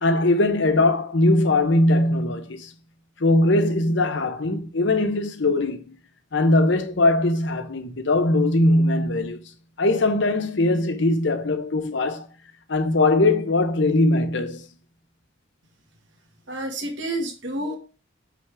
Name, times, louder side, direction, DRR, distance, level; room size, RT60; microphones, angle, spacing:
voice 1, 0.0-2.7 3.2-6.0 6.3-9.4 9.8-12.3 12.7-14.7, left 2 dB, 60° left, 0.8 m, -20 dB
voice 2, 16.5-17.8, right 1 dB, 65° right, 1.9 m, -29 dB
6.3 x 5.9 x 3.5 m
head